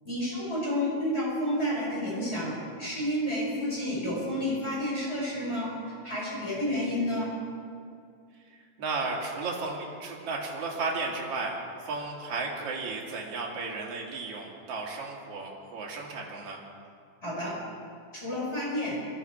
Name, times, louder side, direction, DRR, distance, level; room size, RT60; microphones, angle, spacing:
voice 1, 0.0-7.3 17.2-17.6 18.1-19.0, left 1 dB, 20° left, -6 dB, 5.7 m, -30 dB
voice 2, 8.8-16.6, right 3 dB, 50° right, -2 dB, 3.2 m, -34 dB
21.5 x 14.0 x 4.6 m, 2.3 s
omnidirectional pair, 3.7 m